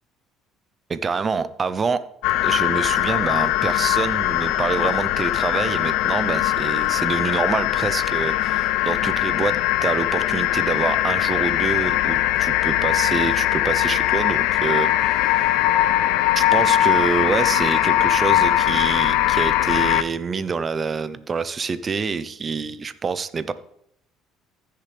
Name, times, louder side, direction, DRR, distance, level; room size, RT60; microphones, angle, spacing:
voice 1, 0.9-2.0 2.4-15.5 16.4-23.5, right 5 dB, 30° right, 14 dB, 0.7 m, -26 dB
sound 1, 2.2-20.0, left 14 dB, 80° left, 0.4 m, -21 dB
15.0 x 6.7 x 3.4 m, 0.75 s
supercardioid pair, 95°, 0 cm